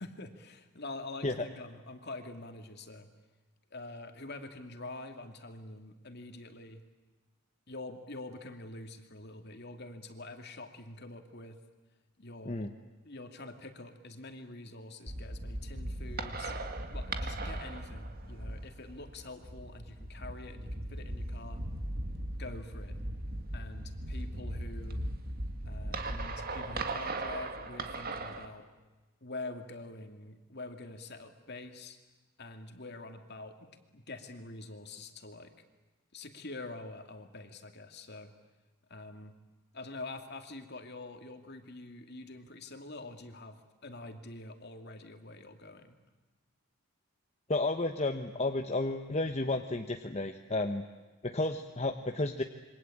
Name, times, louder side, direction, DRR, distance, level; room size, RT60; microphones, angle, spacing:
voice 1, 0.0-3.1 3.7-6.8 7.7-11.6 12.2-12.7 13.0-16.5 16.9-21.6 22.4-23.0 23.5-25.0 25.6-28.7 29.2-32.0 32.4-35.5 36.1-38.3 38.9-39.4 39.7-46.0, left 2 dB, 50° left, 6 dB, 2.6 m, -46 dB
sound 1, 15.1-28.5, right 1 dB, 45° right, 2.0 m, -38 dB
voice 2, 47.5-50.8 51.2-52.4, left 2 dB, 30° left, 5 dB, 1.1 m, -32 dB
27.5 x 24.5 x 8.7 m, 1.2 s
head